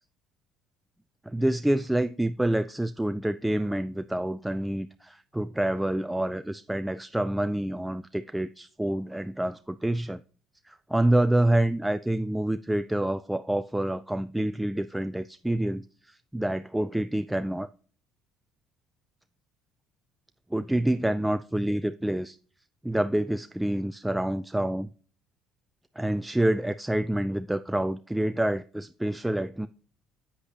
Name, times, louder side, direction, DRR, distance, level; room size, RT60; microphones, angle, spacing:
voice 1, 1.3-10.2 10.7-17.7 20.5-22.4 22.8-24.9 26.0-29.7, right 1 dB, 5° right, 0.3 m, -27 dB
8.3 x 7.9 x 2.8 m
supercardioid pair, 80°, 0 cm